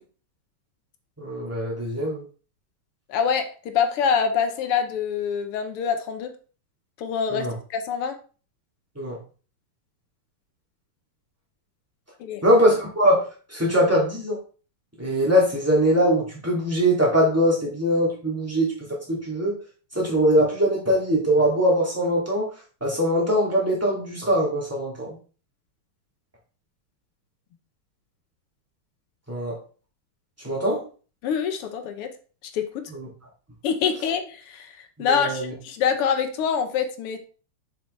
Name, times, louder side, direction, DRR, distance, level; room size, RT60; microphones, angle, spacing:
voice 1, 1.2-2.2 7.3-7.5 9.0-9.2 12.4-13.2 13.5-14.4 15.0-19.6 19.9-22.5 22.8-25.2 29.3-29.6 30.4-30.8 32.9-33.1 35.0-35.5, equal, 5° right, -4 dB, 2.3 m, -22 dB
voice 2, 3.1-3.4 3.7-6.3 7.0-8.1 12.2-12.4 31.2-32.1 32.5-32.6 33.6-37.2, left 7 dB, 90° left, 7 dB, 1.9 m, -25 dB
7.0 x 5.9 x 3.2 m, 0.38 s
omnidirectional pair, 2.4 m